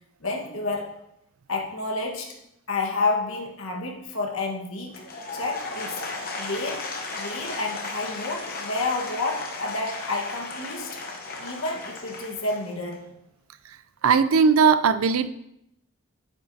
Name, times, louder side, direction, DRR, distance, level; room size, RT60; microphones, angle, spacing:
voice 1, 0.2-1.0 1.5-2.4 2.7-5.0 5.3-6.0 6.4-6.9 7.2-11.0 11.4-13.0, left 3 dB, 80° left, 0 dB, 1.4 m, -30 dB
Applause / Crowd, 4.9-13.1, left 3 dB, 45° left, 1.0 m, -35 dB
voice 2, 14.0-15.3, right 5 dB, 85° right, 12 dB, 0.5 m, -18 dB
8.8 x 8.7 x 2.8 m, 0.81 s
head